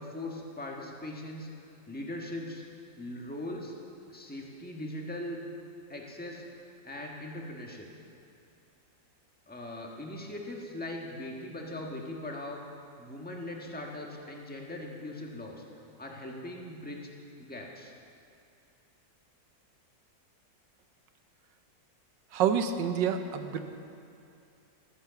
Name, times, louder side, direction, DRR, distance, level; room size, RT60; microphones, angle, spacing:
voice 1, 0.0-2.6 3.0-3.7 4.1-5.4 5.9-6.4 6.8-7.9 9.5-12.6 13.0-15.6 16.0-17.1 17.4-17.9, left 1 dB, 5° left, -1 dB, 1.3 m, -40 dB
voice 2, 22.3-23.6, right 7 dB, 75° right, 8 dB, 1.5 m, -28 dB
14.5 x 9.9 x 6.9 m, 2.6 s
omnidirectional pair, 2.0 m